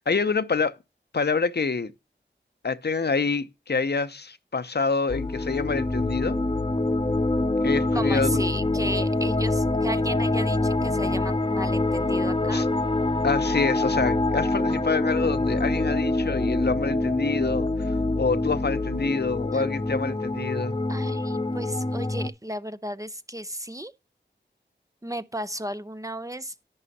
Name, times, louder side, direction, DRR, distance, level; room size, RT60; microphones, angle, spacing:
voice 1, 0.1-0.7 1.1-1.9 2.6-6.4 7.6-8.4 12.5-12.7 13.2-17.7 18.2-20.8, left 4 dB, 60° left, 0.7 m, -26 dB
sound 1, 5.1-22.3, left 2 dB, 25° left, 0.8 m, -25 dB
voice 2, 7.9-12.6 19.5-19.9 20.9-23.9 25.0-26.5, right 1 dB, 15° right, 0.5 m, -34 dB
11.0 x 7.4 x 2.7 m
wide cardioid pair, 50°, 20 cm